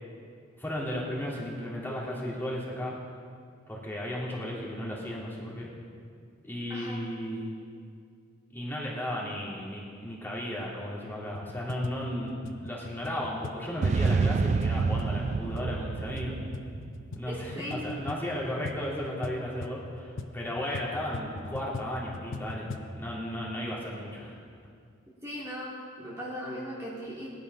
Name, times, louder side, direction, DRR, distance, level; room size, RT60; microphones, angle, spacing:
voice 1, 0.6-2.9 3.7-5.7 6.4-7.5 8.5-16.4 17.1-22.7 23.0-24.3, equal, 10° left, -5 dB, 3.0 m, -35 dB
voice 2, 6.7-7.0 17.3-18.0 25.1-27.3, equal, 15° right, -7 dB, 2.2 m, -38 dB
sound 1, 11.3-22.9, left 3 dB, 65° left, 0.8 m, -42 dB
sound 2, 13.8-17.3, right 4 dB, 35° right, 0.3 m, -28 dB
18.0 x 11.0 x 5.5 m, 2.2 s
head